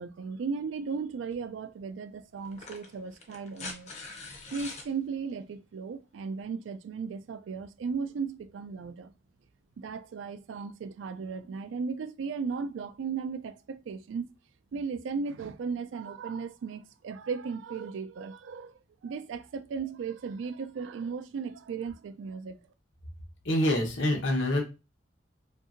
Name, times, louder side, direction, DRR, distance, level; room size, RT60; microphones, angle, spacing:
voice 1, 0.0-3.9 4.5-9.1 9.8-14.3 14.7-22.6, right 5 dB, 85° right, 0.3 m, -36 dB
sound 1, 1.3-1.4 2.4-4.9 6.4-6.5, left 3 dB, 35° left, 0.5 m, -43 dB
voice 2, 23.4-24.6, left 1 dB, 85° left, 0.9 m, -26 dB
2.7 x 2.6 x 2.5 m
head